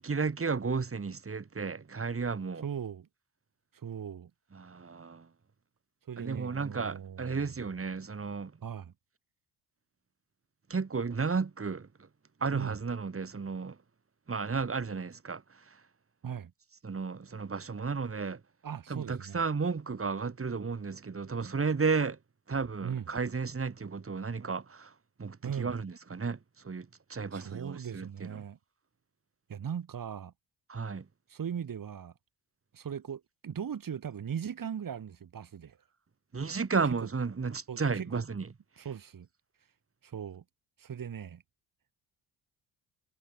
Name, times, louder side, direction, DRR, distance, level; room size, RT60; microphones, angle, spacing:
voice 1, 0.0-2.7 4.5-5.3 6.2-8.6 10.7-12.1 12.4-13.8 14.3-15.8 16.8-18.4 18.9-22.2 22.5-28.4 30.7-31.1 36.3-38.5 38.8-38.9, right 4 dB, 30° right, 7.8 m, -33 dB
voice 2, 2.6-3.1 3.7-4.3 6.1-7.5 8.6-8.9 12.5-12.7 16.2-16.5 18.6-19.4 22.8-23.0 25.4-25.7 27.3-28.6 29.5-30.3 31.3-32.1 32.7-35.8 37.7-38.2 38.8-39.3 40.0-40.4 40.8-41.4, right 8 dB, 50° right, 6.2 m, -39 dB
cardioid pair, 80°, 42 cm